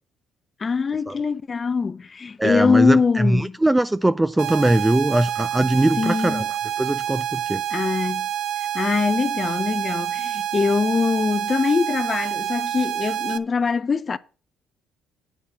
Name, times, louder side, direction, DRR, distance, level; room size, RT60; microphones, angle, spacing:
voice 1, 0.6-3.6 6.0-6.5 7.7-8.3 8.7-14.2, left 5 dB, 35° left, 0.6 m, -23 dB
voice 2, 2.4-6.4 6.8-7.6, right 1 dB, 10° right, 0.4 m, -21 dB
sound 1, 4.4-13.4, right 11 dB, 75° right, 0.6 m, -27 dB
8.4 x 5.5 x 7.2 m
supercardioid pair, 75°, 0 cm